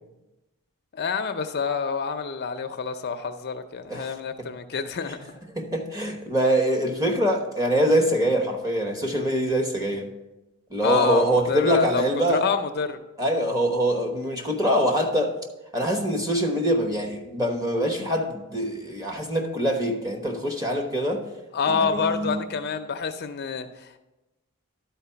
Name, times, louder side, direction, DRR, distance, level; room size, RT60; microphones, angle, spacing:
voice 1, 0.9-5.3 10.8-12.0 12.3-13.0 21.5-24.0, left 5 dB, 45° left, 0.5 m, -27 dB
voice 2, 5.5-10.1 10.7-12.5 13.2-15.4 15.7-21.3 21.7-22.4, equal, 15° right, 1.0 m, -24 dB
11.5 x 4.5 x 5.7 m
head